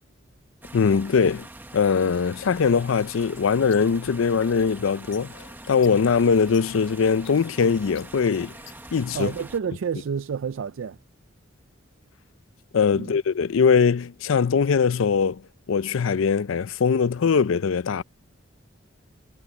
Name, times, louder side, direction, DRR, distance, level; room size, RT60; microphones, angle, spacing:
sound 1, 0.6-9.6, right 1 dB, 10° right, 1.1 m, -44 dB
voice 1, 0.7-1.5 1.7-8.5 8.9-9.3 12.7-15.4 15.7-18.0, left 5 dB, 85° left, 0.5 m, -21 dB
sound 2, 3.4-9.0, left 12 dB, 70° left, 1.3 m, -49 dB
voice 2, 9.1-11.0 12.9-13.2, right 7 dB, 80° right, 0.4 m, -29 dB
head